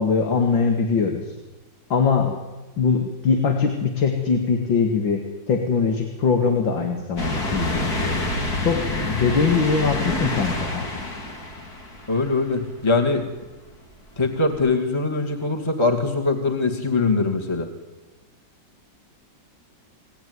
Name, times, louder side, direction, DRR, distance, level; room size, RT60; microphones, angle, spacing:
voice 1, 0.0-1.3 1.9-2.4 2.8-8.3 8.6-10.8, left 5 dB, 90° left, 4 dB, 2.8 m, -22 dB
sound 1, 7.2-12.7 13.2-13.3 14.7-14.8, left 1 dB, 55° left, 4.1 m, -27 dB
voice 2, 12.1-13.3 14.2-17.7, left 3 dB, 15° left, 2 dB, 2.2 m, -22 dB
28.0 x 19.0 x 9.7 m, 1.2 s
omnidirectional pair, 2.0 m